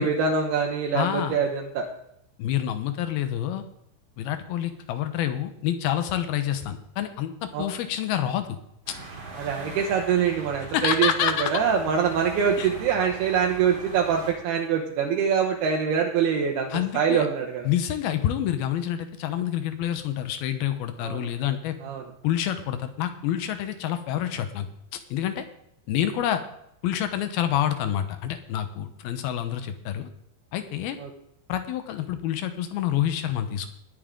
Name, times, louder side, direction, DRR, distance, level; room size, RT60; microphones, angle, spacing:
voice 1, 0.0-1.9 7.5-7.6 9.4-16.7 16.9-17.7 21.0-21.3 21.8-22.0 31.0-31.1, right 7 dB, 75° right, 1 dB, 3.0 m, -24 dB
voice 2, 0.9-1.4 2.4-3.6 4.2-8.6 8.9-9.0 10.7-11.5 12.6-12.7 16.7-17.3 17.6-21.8 22.2-24.7 25.1-25.5 25.9-26.4 26.8-30.1 30.5-31.0 31.5-33.7, left 11 dB, 75° left, 9 dB, 2.7 m, -27 dB
sound 1, 8.9-14.3, right 3 dB, 35° right, 2.8 m, -41 dB
19.5 x 8.9 x 3.7 m, 0.75 s
omnidirectional pair, 4.7 m